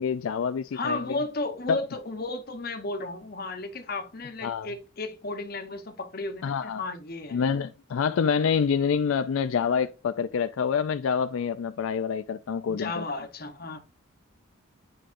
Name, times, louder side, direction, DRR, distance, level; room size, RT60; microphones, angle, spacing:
voice 1, 0.0-1.1 1.7-1.8 4.4-4.7 6.4-6.8 7.3-13.0, left 6 dB, 80° left, 0.4 m, -27 dB
voice 2, 0.7-7.4 12.7-13.8, left 2 dB, 45° left, 0.9 m, -34 dB
9.5 x 5.0 x 2.6 m
head